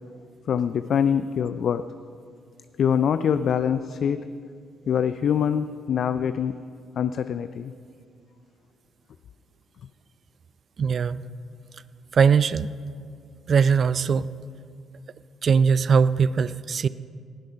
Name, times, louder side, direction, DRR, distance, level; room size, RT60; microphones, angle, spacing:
voice 1, 0.5-1.8 2.8-4.2 4.9-6.5 7.0-7.7, left 8 dB, 60° left, 11 dB, 0.4 m, -24 dB
voice 2, 10.8-11.2 12.1-12.7 13.5-14.3 15.4-16.9, right 6 dB, 50° right, 17 dB, 0.4 m, -20 dB
18.0 x 7.6 x 5.6 m, 2.2 s
cardioid pair, 90°, 0 cm